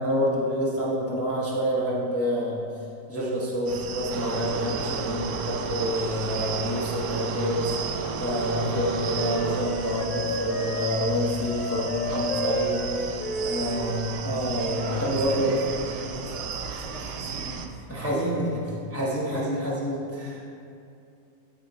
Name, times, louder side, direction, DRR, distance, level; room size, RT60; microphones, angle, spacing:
voice 1, 0.0-2.6 3.1-15.5 17.9-18.4 18.9-20.4, equal, 10° left, -6 dB, 0.9 m, -27 dB
sound 1, 3.7-17.7, right 7 dB, 85° right, 1.2 m, -35 dB
sound 2, 4.1-10.3, right 5 dB, 70° right, 0.7 m, -34 dB
Wind instrument woodwind instrument, 7.8-15.2, equal, 70° left, 1.4 m, -33 dB
voice 2, 13.5-14.0 15.0-18.4 19.3-19.7, right 2 dB, 50° right, -3 dB, 1.1 m, -40 dB
12.5 x 4.2 x 4.0 m, 2.6 s
omnidirectional pair, 1.7 m